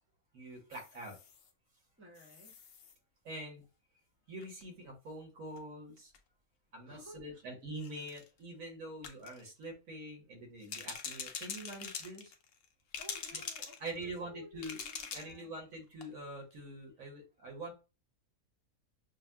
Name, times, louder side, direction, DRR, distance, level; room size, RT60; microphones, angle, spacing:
voice 1, 0.3-1.2 3.2-3.6 4.3-6.1 6.7-12.3 13.8-14.8 15.1-17.7, right 1 dB, 70° right, 1 dB, 1.6 m, -45 dB
sound 1, 0.7-1.5 2.1-2.9 4.4-4.6 5.6-5.7 6.0-6.2 6.9-7.0 7.8-8.3 9.0-9.5 10.6-12.6 12.9-14.1 14.6-15.4 15.7-15.8 16.0-16.1, left 6 dB, 60° left, 0.6 m, -44 dB
voice 2, 2.0-2.6 6.9-7.4 13.0-15.6 17.0-17.1, left 1 dB, 10° right, 0 dB, 0.9 m, -55 dB
6.2 x 2.2 x 2.2 m, 0.30 s
omnidirectional pair, 1.5 m